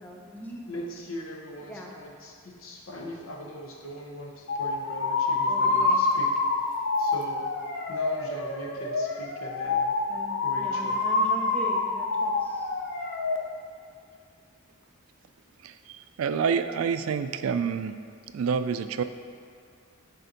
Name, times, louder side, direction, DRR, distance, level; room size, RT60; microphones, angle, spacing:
voice 1, 0.0-0.6 1.7-1.9 5.5-6.0 10.1-12.7, equal, 10° left, -1 dB, 0.8 m, -41 dB
voice 2, 0.7-6.4 7.0-7.5 7.9-10.0 10.4-11.0, equal, 80° left, 0 dB, 1.1 m, -40 dB
sound 1, 4.5-13.4, left 3 dB, 60° left, 0.7 m, -27 dB
voice 3, 16.2-17.9 18.3-19.0, right 6 dB, 80° right, 10 dB, 0.4 m, -27 dB
6.8 x 4.4 x 5.2 m, 2.3 s
head